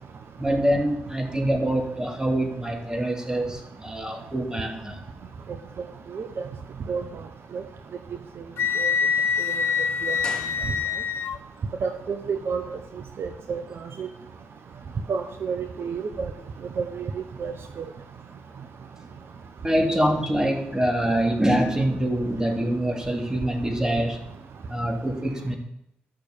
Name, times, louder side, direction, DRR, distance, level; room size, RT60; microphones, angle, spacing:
voice 1, 0.4-5.0 8.6-8.7 19.6-24.2 24.7-25.6, right 1 dB, 15° right, 3 dB, 3.0 m, -25 dB
voice 2, 6.1-6.5 6.9-7.0 7.5-7.6 8.8-8.9 9.5-9.6 10.0-10.2 11.8-12.8 13.2-13.6 14.0-14.1 15.1-16.3 16.8-17.1 17.4-17.9, right 5 dB, 60° right, 7 dB, 1.0 m, -30 dB
Wind instrument woodwind instrument, 8.6-11.4, left 6 dB, 65° left, 0.9 m, -25 dB
sound 1, 10.2-11.3 11.5-11.6, left 2 dB, 15° left, 3.7 m, -41 dB
13.0 x 6.5 x 7.2 m, 0.79 s
hypercardioid pair, 45°, 5 cm